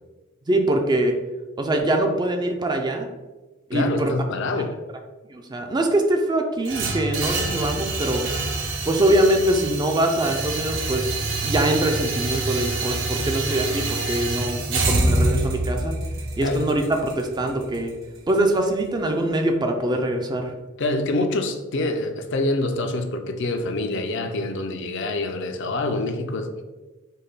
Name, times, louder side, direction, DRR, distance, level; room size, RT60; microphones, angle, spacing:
voice 1, 0.5-1.1 1.6-3.1 3.7-4.1 5.3-8.2 8.8-11.2 11.4-15.9 16.4-17.9 18.3-20.5, right 1 dB, 20° right, 4 dB, 0.4 m, -23 dB
voice 2, 3.7-4.7 16.4-16.7 20.8-26.6, left 2 dB, 60° left, 6 dB, 0.5 m, -26 dB
sound 1, 6.6-18.7, right 2 dB, 60° right, 0.8 m, -26 dB
5.4 x 2.2 x 3.9 m, 1.2 s
head